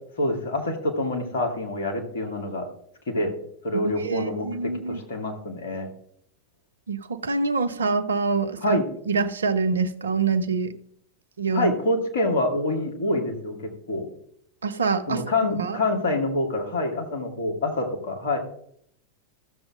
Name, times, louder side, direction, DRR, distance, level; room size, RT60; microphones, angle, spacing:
voice 1, 0.2-2.6 3.1-3.3 3.6-5.9 8.6-8.9 11.5-14.1 15.1-18.4, left 2 dB, 60° left, 3 dB, 2.2 m, -26 dB
voice 2, 3.7-5.0 6.9-8.8 9.1-10.7 11.4-11.7 14.6-15.2 15.5-15.8, right 4 dB, 70° right, 10 dB, 0.7 m, -25 dB
14.0 x 7.1 x 3.8 m, 0.68 s
figure-of-eight pair, 90°, 0 cm